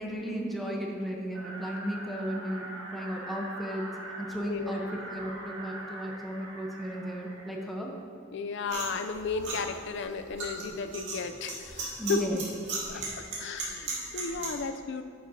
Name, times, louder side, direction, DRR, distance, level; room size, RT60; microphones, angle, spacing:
voice 1, 0.0-3.9 4.2-4.8 5.1-7.9 12.0-12.4 12.9-13.1, equal, ahead, -2 dB, 0.8 m, -35 dB
sound 1, 1.3-7.5, right 1 dB, 90° right, 1.1 m, -42 dB
voice 2, 4.5-5.1 8.3-12.2 12.9-15.0, left 4 dB, 65° left, 8 dB, 0.5 m, -34 dB
sound 2, 8.7-14.5, right 3 dB, 65° right, 2.2 m, -37 dB
11.0 x 7.6 x 2.7 m, 2.3 s
head